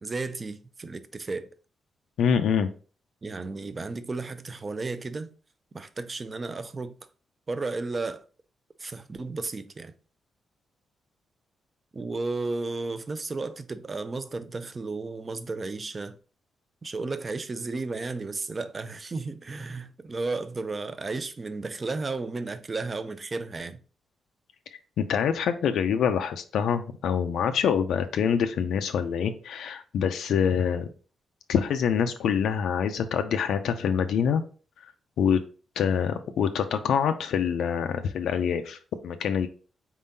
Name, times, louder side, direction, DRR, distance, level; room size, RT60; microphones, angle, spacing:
voice 1, 0.0-1.5 3.2-5.3 5.7-6.9 7.5-8.2 8.8-9.9 11.9-16.2 16.8-23.8, right 3 dB, 25° right, 0.4 m, -33 dB
voice 2, 2.2-2.7 24.7-30.9 31.5-34.4 34.8-34.9 35.2-35.4 35.8-39.5, left 7 dB, 80° left, 0.4 m, -25 dB
4.3 x 3.6 x 2.6 m
wide cardioid pair, 165°, 0 cm